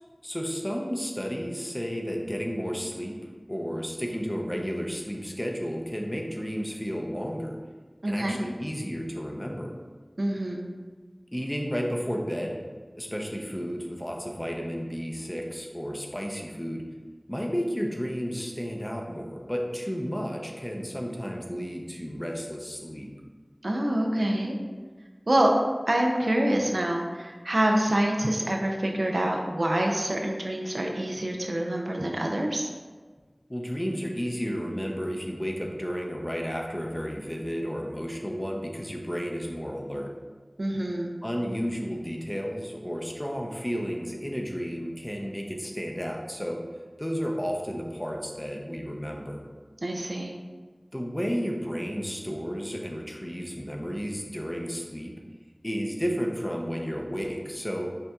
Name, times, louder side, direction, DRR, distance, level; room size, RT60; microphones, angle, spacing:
voice 1, 0.2-3.1 3.5-7.6 8.1-9.7 11.3-12.6 12.9-16.8 17.3-23.1 33.5-40.1 41.2-46.6 47.0-49.4 50.9-55.1 55.6-57.9, equal, 15° left, 0 dB, 0.5 m, -32 dB
voice 2, 8.0-8.4 10.2-10.6 23.6-24.5 25.3-25.5 25.9-32.7 40.6-41.1 49.8-50.3, right 1 dB, 75° right, 1 dB, 0.4 m, -26 dB
5.5 x 2.7 x 2.3 m, 1.4 s
wide cardioid pair, 45°, 0 cm